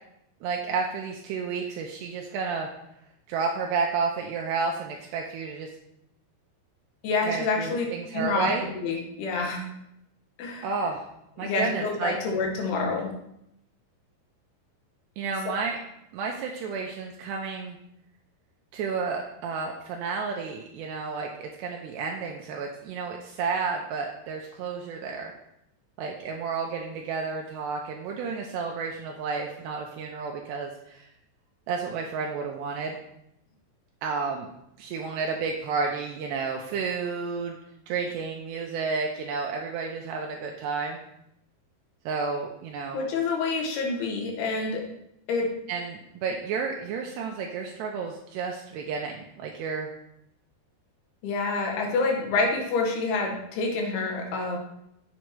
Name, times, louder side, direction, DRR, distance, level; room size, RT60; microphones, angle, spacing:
voice 1, 0.4-2.7 3.3-5.7 7.2-8.6 10.6-11.0 11.4-12.2 15.2-15.8 16.1-17.8 18.7-25.3 26.0-31.1 31.7-33.0 34.0-34.5 34.8-37.6 37.9-41.0 42.1-43.1 45.7-49.9, right 5 dB, 80° right, 1 dB, 2.8 m, -31 dB
voice 2, 7.0-7.9 8.1-8.5 8.7-9.7 10.4-10.7 11.4-13.1 42.9-44.8 45.3-45.5 51.2-54.6, left 3 dB, 70° left, 1 dB, 3.4 m, -27 dB
7.9 x 7.3 x 4.6 m, 0.79 s
omnidirectional pair, 5.0 m